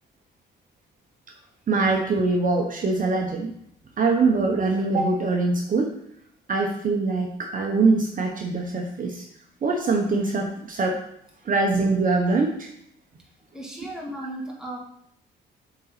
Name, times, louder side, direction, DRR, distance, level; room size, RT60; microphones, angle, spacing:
voice 1, 1.7-3.5 4.0-5.9 6.5-9.2 9.6-11.0 11.5-12.7, right 3 dB, 45° right, 1 dB, 1.0 m, -23 dB
voice 2, 13.5-14.8, right 1 dB, 5° right, -3 dB, 2.0 m, -35 dB
7.2 x 4.0 x 4.2 m, 0.71 s
cardioid pair, 90°, 20 cm